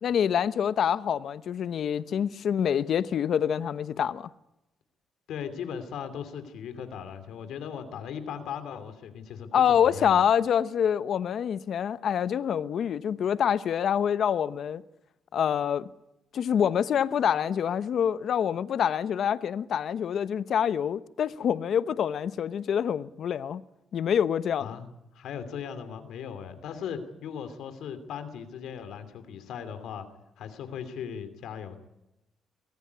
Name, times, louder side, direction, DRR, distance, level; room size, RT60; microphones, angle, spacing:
voice 1, 0.0-4.3 9.5-14.8 15.3-15.9 16.3-23.6 23.9-24.8, left 8 dB, 65° left, 0.9 m, -26 dB
voice 2, 5.3-10.2 24.6-24.9 25.1-30.1 30.4-31.8, left 7 dB, 80° left, 2.9 m, -38 dB
23.5 x 16.0 x 9.6 m
cardioid pair, 90°, 0 cm